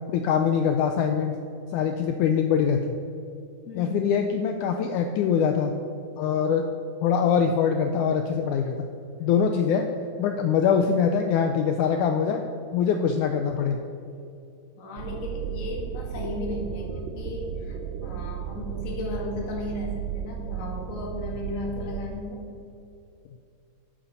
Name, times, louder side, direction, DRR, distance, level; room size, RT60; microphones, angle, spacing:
voice 1, 0.1-1.4 1.7-3.0 3.8-5.7 6.2-6.7 7.0-8.8 9.2-9.9 10.2-12.4 12.7-13.8, left 7 dB, 85° left, 5 dB, 1.8 m, -23 dB
voice 2, 3.6-4.2 10.3-10.4 14.7-22.5, left 2 dB, 35° left, -1 dB, 1.4 m, -35 dB
sound 1, 15.0-22.1, right 9 dB, 80° right, 2.3 m, -34 dB
12.5 x 8.8 x 4.2 m, 2.6 s
omnidirectional pair, 4.0 m